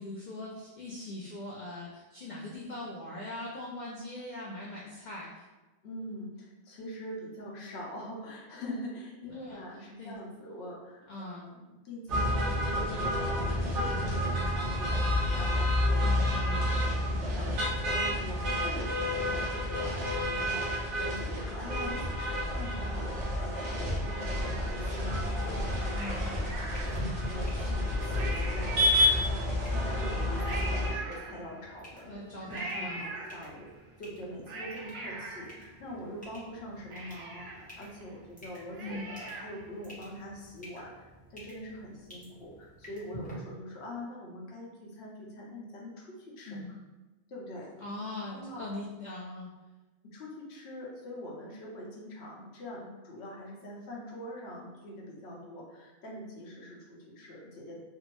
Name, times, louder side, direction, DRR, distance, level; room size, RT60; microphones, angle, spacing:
voice 1, 0.0-5.4 9.3-9.6 10.0-10.1 11.1-11.5 15.9-16.6 25.9-26.4 32.0-33.0 38.8-39.0 46.5-46.7 47.8-49.5, left 1 dB, 75° left, -4 dB, 0.4 m, -41 dB
voice 2, 5.8-26.0 26.2-33.7 34.0-46.6 47.3-47.7 48.3-48.8 50.1-57.8, equal, 60° left, -3 dB, 1.0 m, -43 dB
sound 1, 12.1-30.9, left 1 dB, 50° right, 0.7 m, -30 dB
Cat, 23.6-25.1 25.9-27.3 27.8-27.9 28.1-29.6 30.4-31.8 32.5-33.8 34.2-36.2 36.6-36.7 36.9-39.7 40.0-40.1, right 2 dB, 85° right, 1.0 m, -42 dB
sound 2, 25.2-43.3, right 1 dB, 5° left, 0.8 m, -51 dB
3.5 x 2.0 x 3.0 m, 1.2 s
omnidirectional pair, 1.4 m